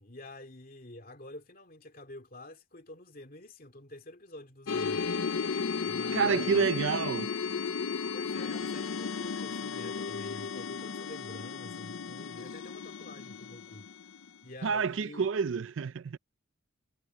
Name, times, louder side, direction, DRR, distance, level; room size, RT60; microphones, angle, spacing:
voice 1, 0.0-5.2 5.8-7.1 8.1-13.9 14.4-15.3, left 1 dB, 45° left, 2.6 m, -48 dB
sound 1, 4.7-14.4, left 5 dB, 80° left, 0.6 m, -34 dB
voice 2, 6.1-7.3 14.6-16.2, right 5 dB, 75° right, 0.5 m, -28 dB
head